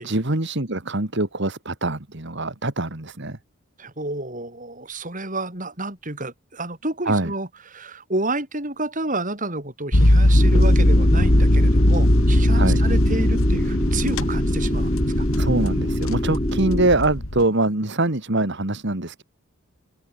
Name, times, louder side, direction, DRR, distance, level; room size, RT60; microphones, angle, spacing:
voice 1, 0.0-3.4 7.1-7.3 12.5-12.8 15.3-19.2, right 2 dB, 55° right, 2.2 m, -23 dB
voice 2, 3.8-15.3, right 2 dB, 35° right, 5.4 m, -30 dB
sound 1, 9.9-17.5, left 1 dB, 70° left, 3.2 m, -19 dB
sound 2, 10.3-16.9, equal, 20° left, 5.6 m, -27 dB
head